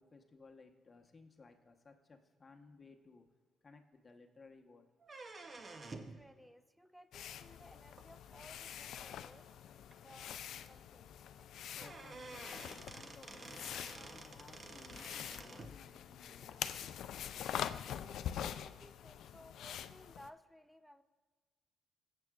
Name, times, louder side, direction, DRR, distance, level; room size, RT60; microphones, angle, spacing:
voice 1, 0.0-3.3 3.6-4.9 11.7-16.6, left 4 dB, 30° left, 3 dB, 1.0 m, -60 dB
sound 1, 5.0-6.2 8.0-8.1 9.0-9.1 9.5-9.6 9.9-10.0 11.4-11.5 11.8-15.7, right 3 dB, 35° right, 0.8 m, -50 dB
voice 2, 5.9-11.1 17.9-21.0, equal, 5° right, 11 dB, 0.6 m, -60 dB
sound 2, 7.1-20.3, left 10 dB, 75° left, 0.3 m, -45 dB
18.0 x 7.7 x 2.4 m, 1.4 s
cardioid pair, 90°, 0 cm